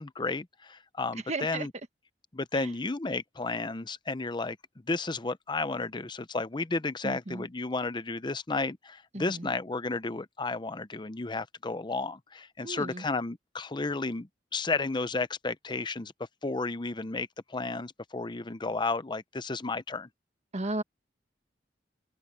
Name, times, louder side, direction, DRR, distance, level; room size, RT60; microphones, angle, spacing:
voice 1, 0.0-1.7 2.3-4.6 4.9-16.1 16.4-20.1, left 3 dB, 25° left, 0.7 m, -33 dB
voice 2, 1.3-1.7 2.5-2.7 7.0-7.4 9.1-9.5 12.6-13.0 20.5-20.8, right 2 dB, 40° right, 1.5 m, -34 dB
head